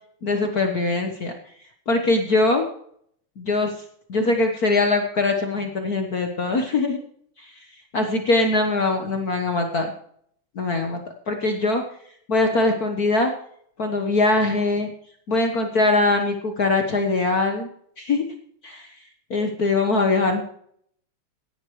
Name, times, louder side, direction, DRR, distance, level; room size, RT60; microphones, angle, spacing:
voice 1, 0.2-1.3 1.9-2.6 3.4-3.7 4.1-7.0 7.4-7.5 7.9-9.9 10.5-11.8 12.3-13.3 13.8-14.9 15.3-17.7 18.0-18.2 18.6-18.9 19.3-20.4, left 2 dB, 70° left, 4 dB, 0.8 m, -22 dB
17.0 x 11.5 x 3.2 m, 0.65 s
omnidirectional pair, 3.5 m